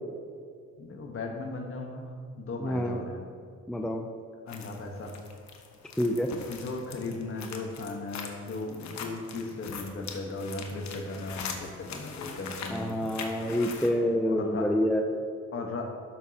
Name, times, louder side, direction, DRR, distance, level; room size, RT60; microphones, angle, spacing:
voice 1, 0.8-3.3 4.4-5.2 6.5-13.2 13.9-14.0 14.3-14.7 15.5-16.0, left 3 dB, 45° left, 2 dB, 1.3 m, -37 dB
voice 2, 2.6-3.0 3.7-4.0 6.0-6.3 12.7-15.0, equal, ahead, 3 dB, 0.5 m, -27 dB
sound 1, 4.5-13.9, left 5 dB, 65° left, 1.1 m, -42 dB
12.5 x 6.1 x 2.9 m, 2.3 s
cardioid pair, 90°, 30 cm